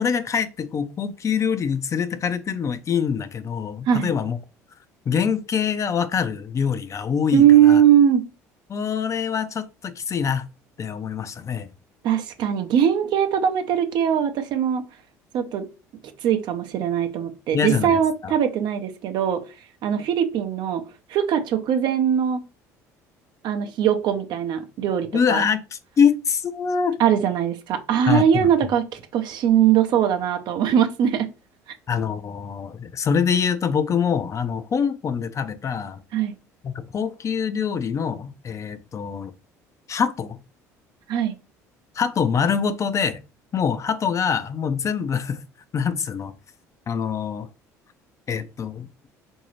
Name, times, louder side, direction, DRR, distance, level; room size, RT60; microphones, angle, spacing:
voice 1, 0.0-4.4 5.1-7.8 8.7-10.5 10.8-11.7 17.5-18.3 25.1-27.0 28.1-28.5 31.9-36.0 36.6-39.3 39.9-40.4 41.9-43.2 43.5-45.4 45.7-46.3 46.9-47.5 48.3-48.9, left 6 dB, 35° left, 0.4 m, -24 dB
voice 2, 7.3-8.3 12.0-14.8 15.3-15.7 16.2-19.4 19.8-20.8 21.1-22.4 23.4-25.4 27.0-31.3 36.1-36.3 41.1-41.3, right 9 dB, 60° right, 0.6 m, -20 dB
3.8 x 2.7 x 3.1 m
hypercardioid pair, 65°, 9 cm